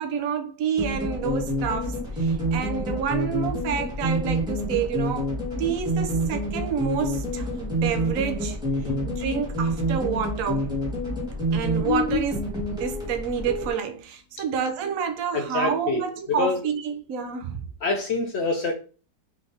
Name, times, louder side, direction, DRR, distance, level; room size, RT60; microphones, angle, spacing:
voice 1, 0.0-5.3 5.6-8.6 8.8-10.7 11.5-12.5 12.8-17.6, right 7 dB, 60° right, 1.0 m, -29 dB
sound 1, 0.8-13.7, equal, ahead, 1.6 m, -27 dB
voice 2, 15.3-16.6 17.8-18.7, left 3 dB, 65° left, 0.6 m, -26 dB
3.9 x 3.4 x 3.9 m
omnidirectional pair, 1.9 m